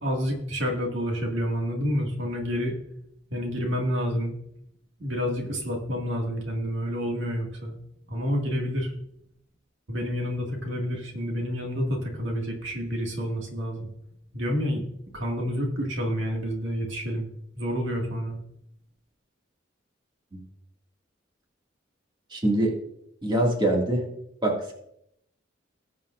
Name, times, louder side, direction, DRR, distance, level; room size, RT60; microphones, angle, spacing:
voice 1, 0.0-2.8 3.3-4.4 5.0-7.7 8.1-8.9 9.9-13.9 14.3-14.8 15.1-17.3 17.6-18.4, equal, 75° right, 0 dB, 2.0 m, -29 dB
voice 2, 22.3-22.7 23.2-24.1 24.4-24.7, right 1 dB, 25° right, -1 dB, 2.1 m, -23 dB
19.0 x 7.2 x 2.5 m, 0.75 s
head